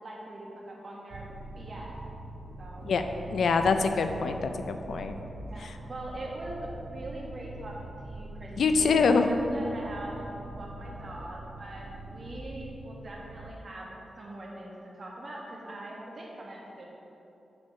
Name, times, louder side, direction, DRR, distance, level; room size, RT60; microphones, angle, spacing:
voice 1, 0.0-2.0 2.6-2.9 3.6-3.8 5.4-16.9, right 1 dB, 40° right, -3 dB, 1.5 m, -42 dB
sound 1, 1.1-13.5, right 2 dB, 65° right, 0.5 m, -43 dB
voice 2, 3.3-5.2 8.6-9.3, left 4 dB, 80° left, 7 dB, 0.5 m, -24 dB
7.5 x 4.5 x 5.9 m, 2.9 s
wide cardioid pair, 125°, 0 cm